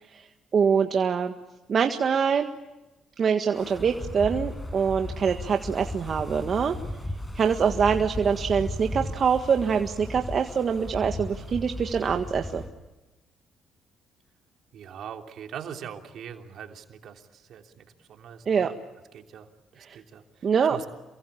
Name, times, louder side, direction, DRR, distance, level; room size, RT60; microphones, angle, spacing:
voice 1, 0.5-1.3 1.7-2.5 3.2-6.7 7.3-12.6 18.5-18.7 19.8-20.0 20.4-20.8, right 6 dB, 50° right, 5 dB, 1.7 m, -24 dB
Wind, 3.5-12.7, left 1 dB, 20° left, 7.6 m, -36 dB
voice 2, 14.7-18.7 19.1-19.5 19.7-20.9, right 8 dB, 70° right, 3 dB, 3.2 m, -42 dB
28.5 x 23.5 x 8.8 m, 1.1 s
supercardioid pair, 70°, 0 cm